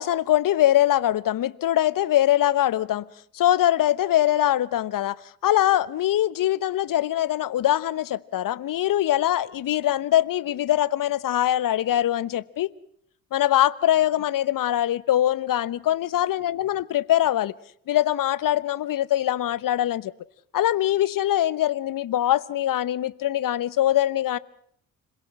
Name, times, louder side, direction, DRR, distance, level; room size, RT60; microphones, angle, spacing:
voice 1, 0.0-3.1 3.3-5.2 5.4-12.7 13.3-17.5 17.9-20.1 20.5-24.4, left 12 dB, 50° left, 0.9 m, -22 dB
26.5 x 17.0 x 7.6 m
hypercardioid pair, 50°, 42 cm